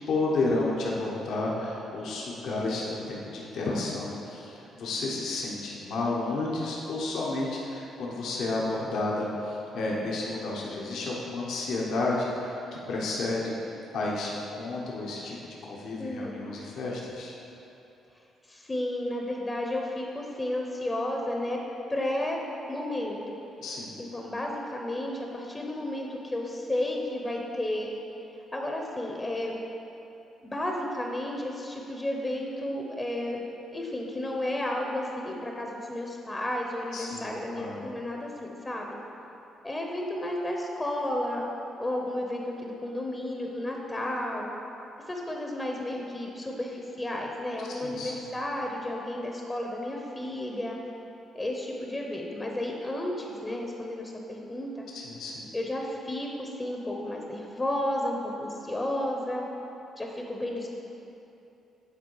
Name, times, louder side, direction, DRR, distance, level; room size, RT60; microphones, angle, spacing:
voice 1, 0.1-13.5 13.9-15.4 15.6-17.3 23.6-23.9 36.9-37.9 47.8-48.1 54.9-55.4, left 2 dB, 75° left, -4 dB, 1.0 m, -31 dB
voice 2, 16.0-16.4 18.5-21.6 21.9-22.4 22.7-23.2 24.0-28.0 28.5-29.6 30.4-33.4 33.7-38.3 38.6-39.0 39.6-41.4 41.8-44.5 45.1-50.8 51.3-54.9 55.5-59.4 60.0-60.7, left 1 dB, 20° left, 0 dB, 0.7 m, -32 dB
9.3 x 3.8 x 4.7 m, 2.9 s
cardioid pair, 90°, 0 cm